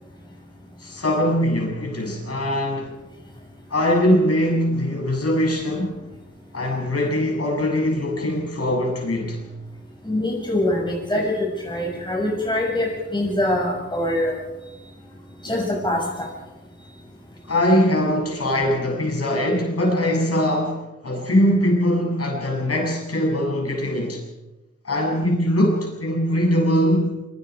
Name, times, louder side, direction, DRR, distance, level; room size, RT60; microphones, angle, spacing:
voice 1, 0.8-2.9 3.7-6.0 6.5-9.5 11.1-11.2 17.5-24.2 24.8-27.1, equal, 50° left, 0 dB, 7.8 m, -21 dB
voice 2, 10.0-14.4 15.4-16.0, left 1 dB, 15° left, -2 dB, 6.5 m, -24 dB
25.5 x 25.0 x 5.0 m, 1.0 s
wide cardioid pair, 120°, 30 cm